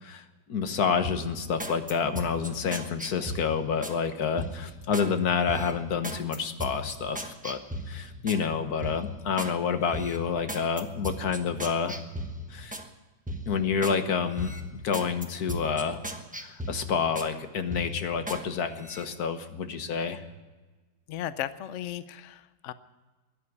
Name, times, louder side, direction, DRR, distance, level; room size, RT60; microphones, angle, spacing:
voice 1, 0.5-7.6 7.9-12.0 12.5-12.7 13.5-14.5 14.8-16.0 16.4-20.2, left 6 dB, 55° left, 8 dB, 1.5 m, -28 dB
sound 1, 1.0-4.0 4.4-5.1 5.5-8.4 8.8-9.5 9.9-12.9 13.3-14.0 14.3-17.3 17.7-18.4 18.8-19.0, equal, 5° right, 0.7 m, -37 dB
voice 2, 21.1-22.7, left 12 dB, 75° left, 13 dB, 0.7 m, -35 dB
14.0 x 10.5 x 9.4 m, 1.2 s
omnidirectional pair, 2.1 m